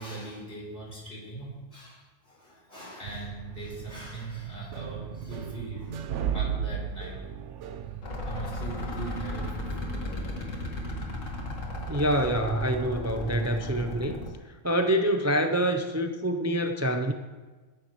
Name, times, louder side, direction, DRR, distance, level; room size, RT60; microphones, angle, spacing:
voice 1, 0.0-6.0 6.3-7.2 8.2-10.3 11.2-11.3 11.7-11.8 12.1-12.3 16.8-16.9, right 2 dB, 45° left, -5 dB, 4.6 m, -41 dB
sound 1, 3.0-8.0, right 8 dB, 75° right, 1.0 m, -35 dB
sound 2, 8.0-14.3, left 1 dB, 85° left, 2.1 m, -35 dB
voice 2, 11.9-14.2 14.6-17.1, right 1 dB, 20° right, 5 dB, 0.4 m, -26 dB
20.5 x 10.0 x 3.1 m, 1.3 s
omnidirectional pair, 1.3 m